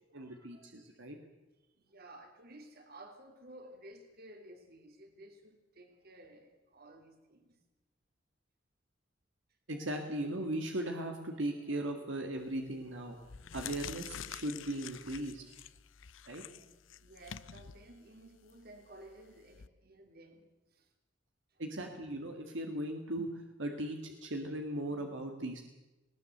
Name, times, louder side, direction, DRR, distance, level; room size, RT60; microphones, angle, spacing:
voice 1, 0.1-1.2 9.7-13.2 13.5-15.4 16.3-16.4 21.6-25.6, right 1 dB, 75° right, 4 dB, 2.0 m, -38 dB
voice 2, 1.7-7.6 16.5-20.4 20.7-20.9 21.5-21.6, right 1 dB, 55° right, 6 dB, 3.1 m, -55 dB
sound 1, 12.4-12.7 13.2-19.7, left 8 dB, 85° left, 0.7 m, -48 dB
19.5 x 19.0 x 7.9 m, 1.1 s
head